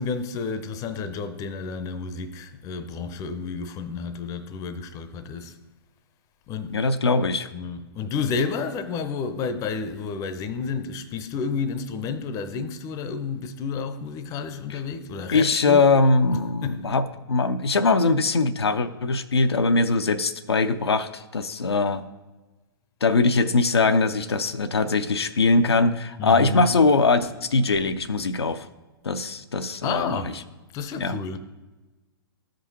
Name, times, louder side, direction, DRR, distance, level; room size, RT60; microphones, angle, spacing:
voice 1, 0.0-5.6 6.5-6.8 7.5-15.8 16.3-16.9 26.2-26.7 29.8-30.3 30.7-31.4, left 5 dB, 25° left, 0.6 m, -31 dB
voice 2, 6.7-7.5 14.7-14.8 15.3-22.0 23.0-28.7 29.0-30.2 31.0-31.2, left 3 dB, 85° left, 0.5 m, -21 dB
14.0 x 5.2 x 2.8 m
figure-of-eight pair, 115°, 13 cm